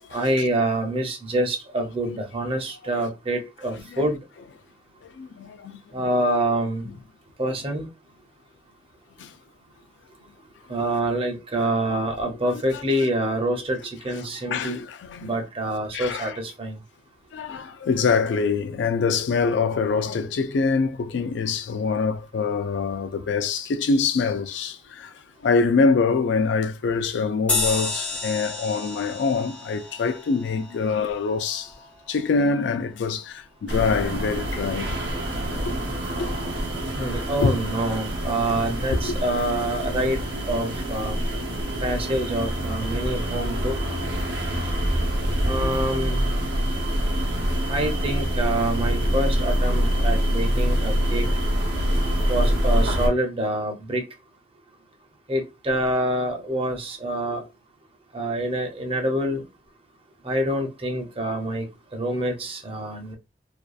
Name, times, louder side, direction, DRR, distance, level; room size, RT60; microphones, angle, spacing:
voice 1, 0.1-4.2 5.9-6.9 7.4-7.9 10.7-14.8 15.2-16.8 36.9-40.2 40.5-41.2 41.8-43.8 45.4-46.3 47.7-51.3 52.3-54.0 55.3-57.4 58.1-59.4 60.2-63.1, right 1 dB, 30° right, 0.6 m, -26 dB
voice 2, 3.7-4.1 5.0-6.1 9.2-9.4 12.5-12.8 14.1-15.3 15.9-16.4 17.3-31.7 32.1-35.0 35.5-35.7 36.2-36.4 37.4-37.5 38.9-39.2, left 4 dB, 85° left, 0.3 m, -25 dB
sound 1, 27.5-32.4, left 3 dB, 5° left, 0.5 m, -31 dB
sound 2, 33.7-53.1, equal, 80° right, 0.8 m, -25 dB
2.7 x 2.2 x 2.3 m
head